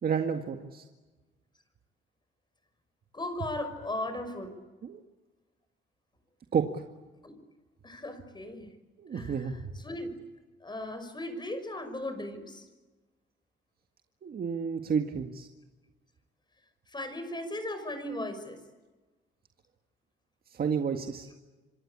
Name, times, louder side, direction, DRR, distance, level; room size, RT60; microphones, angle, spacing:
voice 1, 0.0-0.8 4.8-5.0 6.5-6.8 9.0-9.7 14.2-15.5 20.5-21.3, right 6 dB, 50° right, 5 dB, 1.9 m, -31 dB
voice 2, 3.1-4.5 7.2-7.3 7.8-8.7 9.1-9.4 9.8-10.1 10.6-12.6 16.9-18.6, left 1 dB, 20° left, 9 dB, 6.0 m, -37 dB
27.0 x 24.0 x 8.8 m, 1.2 s
cardioid pair, 90°, 20 cm